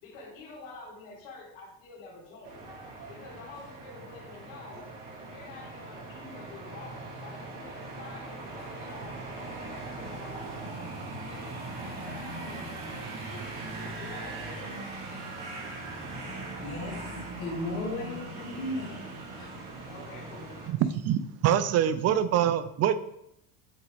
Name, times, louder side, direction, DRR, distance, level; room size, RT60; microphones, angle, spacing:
voice 1, 0.0-2.6 3.1-4.9 5.2-10.5 11.2-14.9 19.9-20.6, left 3 dB, 80° left, -4 dB, 2.4 m, -48 dB
sound 1, 2.4-20.7, right 2 dB, 70° right, 2.3 m, -40 dB
voice 2, 16.6-19.0 19.4-19.5, left 2 dB, 65° left, -5 dB, 2.4 m, -36 dB
voice 3, 20.7-23.0, right 10 dB, 40° right, 13 dB, 0.5 m, -25 dB
7.5 x 3.6 x 3.5 m, 0.78 s
supercardioid pair, 115°, 40 cm